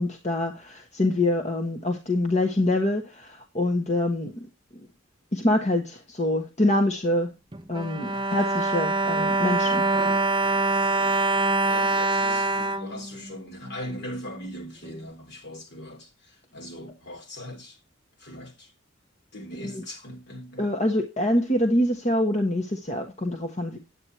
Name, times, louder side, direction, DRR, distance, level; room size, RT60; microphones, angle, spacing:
voice 1, 0.0-4.5 5.3-7.3 7.7-9.8 19.6-19.8 20.6-23.8, left 1 dB, 35° left, 1.4 m, -25 dB
Bowed string instrument, 7.5-13.8 14.4-14.5 14.8-15.0, right 2 dB, 25° right, 0.6 m, -24 dB
voice 2, 9.0-9.3 9.6-9.9 10.4-11.2 11.6-17.8 18.2-18.7 19.3-20.7, equal, 60° left, 2.8 m, -40 dB
9.7 x 9.0 x 4.3 m
head